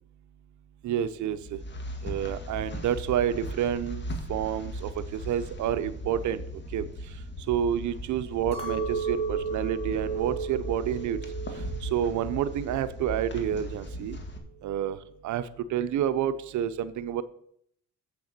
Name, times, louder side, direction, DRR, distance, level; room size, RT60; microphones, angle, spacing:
voice 1, 0.8-1.6 2.0-6.9 7.5-11.2 11.8-14.2 14.6-15.0 15.2-17.2, right 9 dB, 70° right, 13 dB, 0.7 m, -29 dB
sound 1, 1.3-14.4, equal, 35° left, 1.7 m, -38 dB
Chink clink, 8.5-12.9 13.3-13.9, right 5 dB, 20° left, 2.4 m, -35 dB
7.9 x 6.8 x 6.6 m, 0.68 s
cardioid pair, 90°, 30 cm